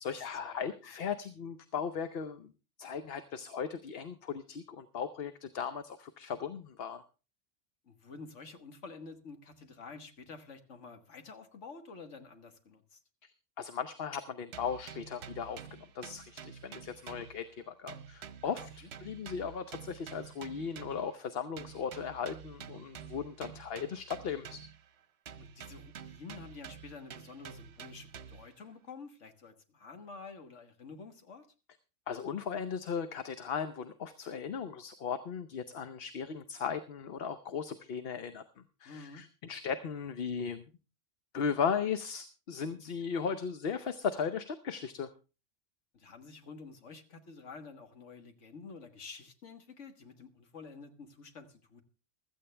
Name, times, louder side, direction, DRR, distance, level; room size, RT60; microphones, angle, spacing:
voice 1, 0.0-2.5 2.8-7.0 13.2-18.7 19.0-24.6 32.1-38.4 38.8-40.6 41.3-45.1, left 6 dB, 55° left, 10 dB, 1.0 m, -37 dB
voice 2, 7.8-13.0 18.4-18.9 25.4-31.5 38.9-39.2 45.9-51.8, left 4 dB, 80° left, 7 dB, 1.8 m, -49 dB
sound 1, 14.5-17.6 17.9-21.2 21.6-24.9 25.3-28.6, right 7 dB, 65° right, 1.0 m, -49 dB
15.5 x 13.5 x 3.3 m, 0.32 s
omnidirectional pair, 1.2 m